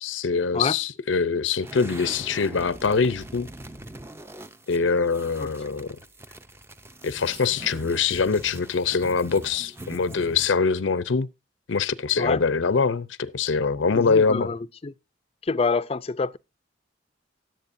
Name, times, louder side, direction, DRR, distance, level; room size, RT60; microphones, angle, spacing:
voice 1, 0.0-3.5 4.7-5.9 7.0-11.3 11.7-14.5, left 5 dB, 85° left, 0.6 m, -24 dB
sound 1, 1.6-10.7, right 1 dB, 15° right, 0.6 m, -42 dB
voice 2, 5.4-5.9 12.2-12.4 13.9-14.9 15.4-16.4, left 4 dB, 30° left, 0.4 m, -27 dB
17.5 x 7.9 x 2.6 m
head